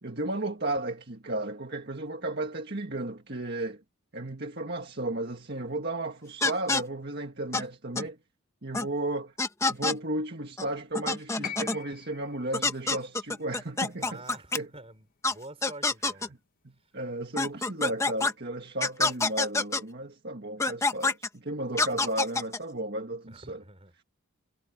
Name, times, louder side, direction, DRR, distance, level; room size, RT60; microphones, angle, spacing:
voice 1, 0.0-3.8 4.1-8.2 8.6-9.3 9.7-14.2 14.5-14.7 16.6-23.6, right 1 dB, 45° right, 1.8 m, -34 dB
sound 1, 6.4-6.8 7.5-7.6 8.0-8.1 8.7-8.9 9.4-10.0 10.6-10.7 10.9-11.8 12.5-14.6 15.2-15.3 15.6-16.3 17.4-18.3 18.8-19.8 20.6-21.3 21.8-22.6, left 3 dB, 15° left, 0.9 m, -26 dB
sound 2, 11.4-15.6 16.8-16.9, left 8 dB, 40° left, 0.9 m, -45 dB
voice 2, 14.0-16.4 23.3-23.9, right 2 dB, 25° right, 5.4 m, -47 dB
head